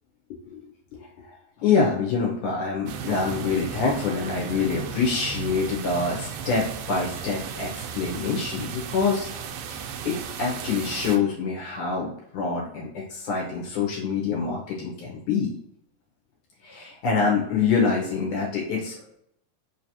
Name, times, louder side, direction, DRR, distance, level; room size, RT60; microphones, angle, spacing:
voice 1, 1.6-9.3 9.7-15.5 16.6-19.0, left 5 dB, 70° left, -2 dB, 2.2 m, -26 dB
sound 1, 2.9-11.2, right 7 dB, 80° right, 2.1 m, -35 dB
5.3 x 3.1 x 2.7 m, 0.72 s
omnidirectional pair, 3.9 m